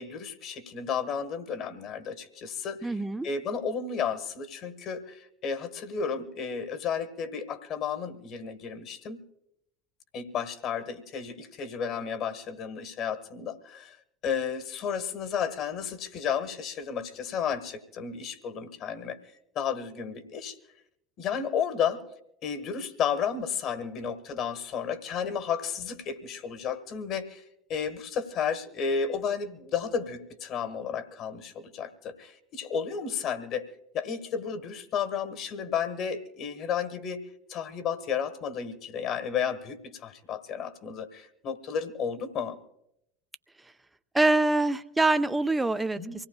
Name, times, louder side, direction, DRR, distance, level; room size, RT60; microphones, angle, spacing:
voice 1, 0.0-9.2 10.1-14.0 14.2-19.2 19.5-20.6 21.2-22.0 22.4-27.4 27.7-33.7 33.9-37.2 37.5-42.6 45.9-46.1, left 7 dB, 45° left, 10 dB, 1.5 m, -32 dB
voice 2, 2.8-3.3 44.1-46.0, right 2 dB, 10° right, 10 dB, 0.6 m, -24 dB
25.0 x 17.5 x 2.3 m, 0.78 s
figure-of-eight pair, 65°, 0 cm